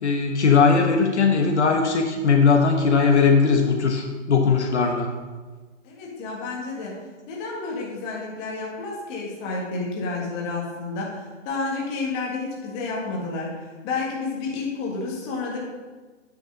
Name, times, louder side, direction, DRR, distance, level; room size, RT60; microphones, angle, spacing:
voice 1, 0.0-5.1, left 5 dB, 60° left, 3 dB, 1.4 m, -19 dB
voice 2, 5.8-7.0 7.3-15.6, left 3 dB, 20° left, -3 dB, 1.7 m, -30 dB
9.1 x 6.5 x 5.5 m, 1.3 s
hypercardioid pair, 155°, 38 cm